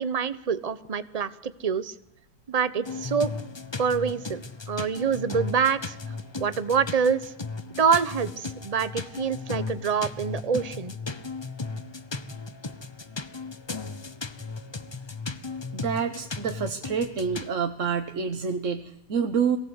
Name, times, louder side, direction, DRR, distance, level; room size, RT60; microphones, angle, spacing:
voice 1, 0.0-1.9 2.5-3.3 3.8-7.3 7.8-10.9, right 6 dB, 30° right, 14 dB, 0.8 m, -26 dB
sound 1, 2.8-17.5, left 4 dB, 25° left, 0.6 m, -36 dB
voice 2, 15.7-19.6, right 6 dB, 50° right, 6 dB, 1.4 m, -28 dB
22.5 x 17.0 x 8.2 m, 0.74 s
omnidirectional pair, 1.8 m